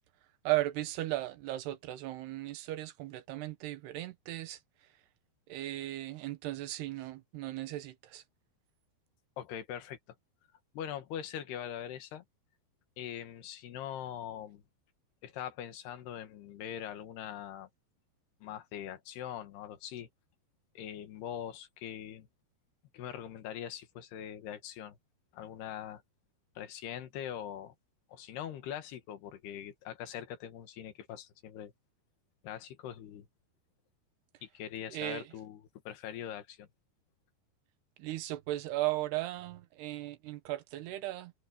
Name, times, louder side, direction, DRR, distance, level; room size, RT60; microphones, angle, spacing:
voice 1, 0.4-4.6 5.5-8.2 34.9-35.3 38.0-41.3, right 16 dB, 85° right, 3.2 m, -36 dB
voice 2, 9.4-10.0 10.7-12.2 13.0-14.6 15.2-17.7 18.4-20.1 20.8-22.3 22.9-25.0 25.3-26.0 26.6-27.7 28.1-31.7 32.4-33.3 34.4-36.7, left 10 dB, 80° left, 3.8 m, -42 dB
omnidirectional pair, 4.7 m